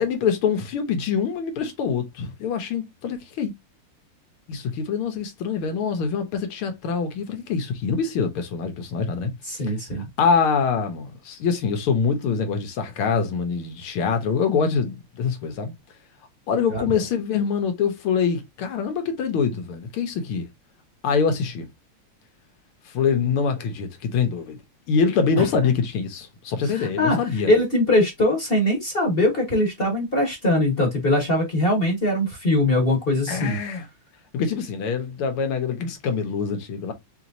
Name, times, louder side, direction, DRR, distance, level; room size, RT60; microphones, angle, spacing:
voice 1, 0.0-3.5 4.5-9.3 10.2-15.7 16.5-20.5 21.0-21.7 22.9-24.6 24.9-27.5 33.3-33.9 34.3-36.9, left 6 dB, 85° left, 1.9 m, -24 dB
voice 2, 9.4-10.0 16.7-16.9 25.4-25.5 26.6-33.6, left 1 dB, 35° left, 1.1 m, -22 dB
5.0 x 2.9 x 2.6 m
omnidirectional pair, 2.3 m